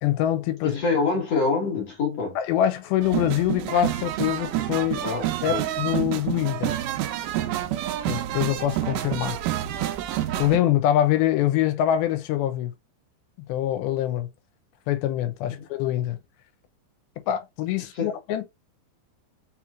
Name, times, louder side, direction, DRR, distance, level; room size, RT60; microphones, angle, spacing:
voice 1, 0.0-0.8 2.4-5.0 5.4-6.8 8.1-9.4 10.4-12.7 13.5-14.3 14.9-16.2 17.3-18.4, left 12 dB, 80° left, 2.5 m, -24 dB
voice 2, 0.6-2.4 5.0-5.7 15.5-15.7 17.9-18.2, left 4 dB, 55° left, 1.9 m, -26 dB
sound 1, 3.0-10.6, right 13 dB, 85° right, 1.8 m, -28 dB
5.5 x 3.0 x 2.4 m
omnidirectional pair, 4.5 m